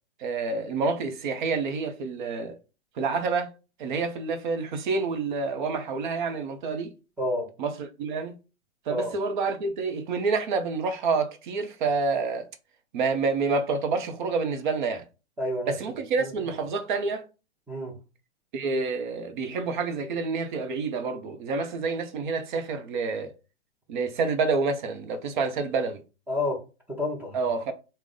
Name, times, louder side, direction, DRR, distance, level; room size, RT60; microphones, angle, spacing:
voice 1, 0.2-2.6 3.0-3.5 3.8-6.9 7.6-8.4 8.9-12.4 12.9-15.0 15.7-17.2 18.5-23.3 23.9-26.0 27.3-27.7, right 4 dB, 45° right, 0.7 m, -28 dB
voice 2, 7.2-7.5 8.9-9.1 15.4-15.7 16.2-16.3 17.7-18.0 26.3-26.6 26.9-27.4, left 1 dB, 5° right, 0.7 m, -29 dB
3.5 x 2.2 x 3.7 m
hypercardioid pair, 135°, 34 cm